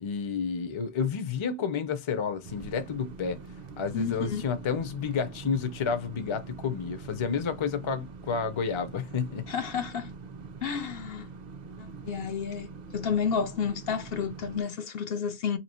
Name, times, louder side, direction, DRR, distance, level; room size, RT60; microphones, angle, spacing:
voice 1, 0.0-3.4 3.8-9.4, left 6 dB, 35° left, 0.5 m, -30 dB
sound 1, 2.4-14.6, right 4 dB, 45° right, 0.6 m, -44 dB
voice 2, 3.9-4.4 9.5-10.1 10.6-11.3 11.8-15.6, left 6 dB, 65° left, 0.8 m, -31 dB
3.0 x 2.9 x 4.2 m
omnidirectional pair, 1.1 m